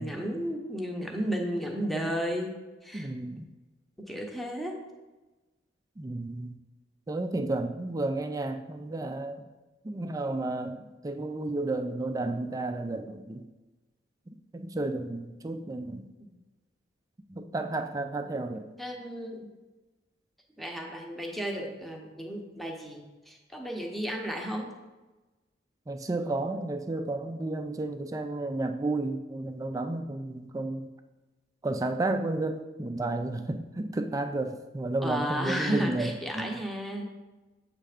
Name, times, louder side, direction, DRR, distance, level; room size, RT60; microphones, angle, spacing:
voice 1, 0.0-2.5 2.8-3.1 4.0-4.8 16.2-16.3 18.8-19.5 20.6-24.7 35.0-37.1, equal, ahead, 1 dB, 0.8 m, -33 dB
voice 2, 2.9-3.5 6.0-6.6 7.1-9.5 9.8-13.4 14.3-16.0 17.3-18.7 25.9-30.9 31.6-36.6, right 2 dB, 20° right, 7 dB, 0.3 m, -32 dB
7.5 x 3.3 x 4.9 m, 1.1 s
head